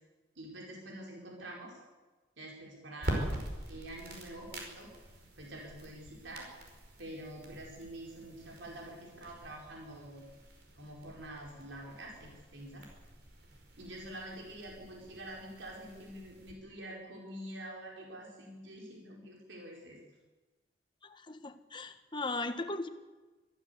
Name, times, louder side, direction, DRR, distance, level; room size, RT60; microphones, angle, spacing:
voice 1, 0.3-1.8 2.4-3.4 3.7-4.9 5.4-6.5 7.0-10.2 10.8-12.8 13.8-20.0, right 1 dB, 90° right, -1 dB, 4.7 m, -46 dB
sound 1, 3.0-16.5, right 1 dB, 60° right, 5.3 m, -44 dB
voice 2, 21.3-22.9, left 2 dB, 25° left, 8 dB, 1.3 m, -37 dB
24.0 x 14.5 x 8.1 m, 1.2 s
head